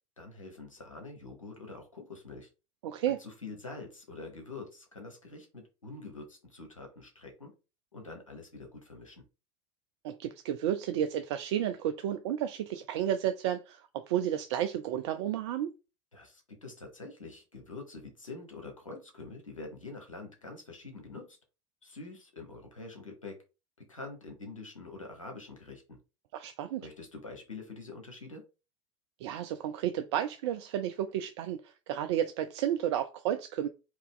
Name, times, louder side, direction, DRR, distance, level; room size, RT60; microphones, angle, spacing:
voice 1, 0.2-2.5 3.1-7.5 7.9-9.2 16.1-21.4 21.8-23.4 23.9-26.0 26.8-28.4, left 3 dB, 85° left, 1.2 m, -45 dB
voice 2, 2.8-3.2 10.0-15.7 26.3-26.9 29.2-33.7, right 10 dB, 60° right, 0.4 m, -32 dB
3.9 x 2.9 x 3.7 m
figure-of-eight pair, 75°, 16 cm